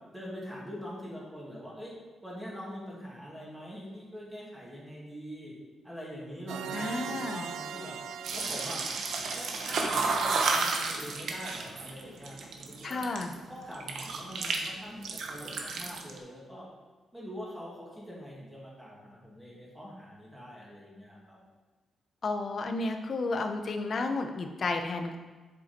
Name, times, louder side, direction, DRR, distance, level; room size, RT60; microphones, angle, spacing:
voice 1, 0.1-1.9 2.2-5.5 5.8-8.0 8.3-8.8 9.2-13.0 13.5-16.7 17.1-21.4, equal, 5° right, -6 dB, 2.5 m, -43 dB
sound 1, 6.5-11.1, right 7 dB, 90° right, 0.4 m, -42 dB
voice 2, 6.7-7.5 12.8-13.3 22.2-25.2, left 3 dB, 40° left, 6 dB, 0.8 m, -32 dB
sound 2, 8.2-13.3 13.7-14.7 14.9-16.2, right 4 dB, 65° right, 1.1 m, -32 dB
7.7 x 7.4 x 4.4 m, 1.3 s
wide cardioid pair, 150°, 0 cm